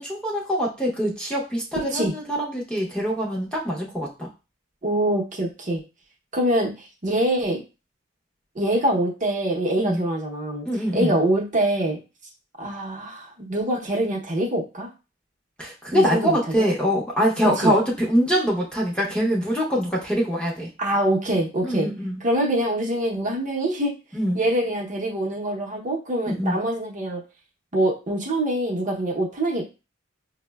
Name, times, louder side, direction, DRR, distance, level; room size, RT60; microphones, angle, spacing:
voice 1, 0.0-4.3 9.8-10.0 10.6-11.2 15.6-20.7 21.6-22.2 24.1-24.4 26.3-26.6, equal, 5° left, -4 dB, 0.6 m, -24 dB
voice 2, 4.8-5.8 6.3-7.6 8.5-10.7 10.9-12.0 12.6-14.9 15.9-16.7 17.6-17.7 20.8-21.9 22.2-23.9 24.3-27.2 27.7-29.6, right 1 dB, 35° right, -1 dB, 0.7 m, -24 dB
5.5 x 2.0 x 2.2 m, 0.30 s
head